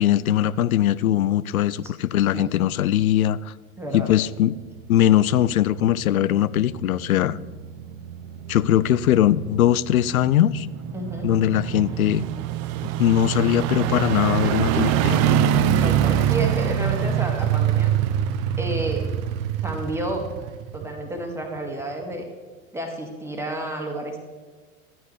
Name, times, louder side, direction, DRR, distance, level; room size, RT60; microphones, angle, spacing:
voice 1, 0.0-3.4 3.9-4.6 4.9-7.4 8.5-10.7 11.2-12.3 13.0-15.2, left 12 dB, 75° left, 19 dB, 0.5 m, -20 dB
voice 2, 3.8-4.1 10.9-11.3 15.8-17.9 18.6-19.0 19.6-20.3 20.7-22.3 22.7-24.2, right 1 dB, 5° right, 1 dB, 2.0 m, -30 dB
sound 1, 4.7-21.2 21.6-21.7, right 10 dB, 35° right, 0.7 m, -25 dB
12.5 x 9.5 x 3.3 m, 1.5 s
figure-of-eight pair, 90°, 43 cm